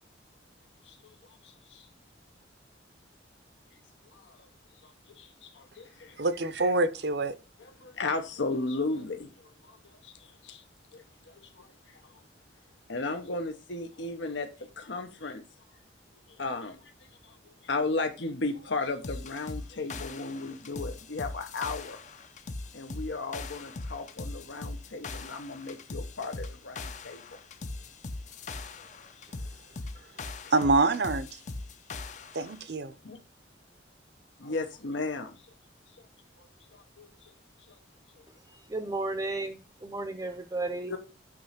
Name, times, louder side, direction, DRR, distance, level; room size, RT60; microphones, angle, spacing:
voice 1, 1.4-1.9 4.1-4.5 4.8-6.2 7.6-10.6 10.9-12.0 12.9-14.5 14.8-15.4 16.4-16.8 17.2-22.0 22.7-27.2 28.8-28.9 33.0-33.2 34.4-35.4 36.7-37.3 37.7-37.8 40.9-41.0, left 3 dB, 80° left, 1.0 m, -35 dB
voice 2, 6.2-7.4 30.5-31.3 32.3-32.9, right 3 dB, 65° right, 0.7 m, -25 dB
sound 1, 19.0-32.6, left 3 dB, 40° left, 0.6 m, -40 dB
voice 3, 38.5-40.9, right 2 dB, 20° right, 0.6 m, -34 dB
8.7 x 3.2 x 5.7 m
head